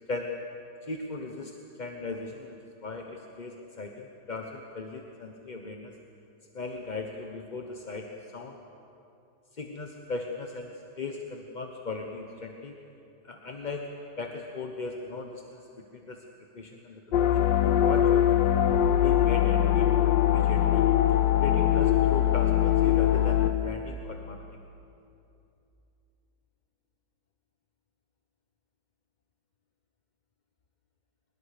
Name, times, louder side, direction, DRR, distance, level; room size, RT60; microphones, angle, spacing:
voice 1, 0.8-5.9 6.5-8.1 8.3-8.6 9.6-12.7 13.2-13.9 14.2-15.6 15.9-16.2 16.5-18.6 19.0-19.9 20.3-20.9 21.4-24.4, left 3 dB, 30° left, 3 dB, 0.9 m, -38 dB
sound 1, 17.1-23.5, left 11 dB, 75° left, 1.6 m, -22 dB
23.5 x 20.5 x 6.7 m, 2.7 s
omnidirectional pair, 2.0 m